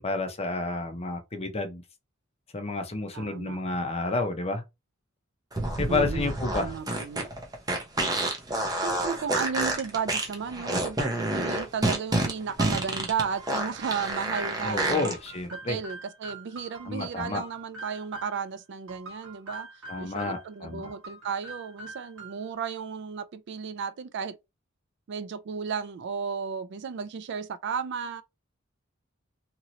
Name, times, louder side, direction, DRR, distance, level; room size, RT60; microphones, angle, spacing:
voice 1, 0.0-1.8 2.5-4.6 5.8-6.7 14.6-15.8 16.9-17.4 19.9-20.8, left 3 dB, 30° left, 0.6 m, -30 dB
voice 2, 3.1-3.6 5.9-7.3 8.7-15.1 15.5-19.7 20.0-24.4 25.1-28.2, right 6 dB, 55° right, 0.4 m, -34 dB
sound 1, 5.5-15.1, right 1 dB, 20° right, 0.7 m, -28 dB
sound 2, 13.4-18.4 18.9-20.5 20.8-22.6, right 2 dB, 75° right, 1.5 m, -44 dB
2.9 x 2.8 x 2.7 m
head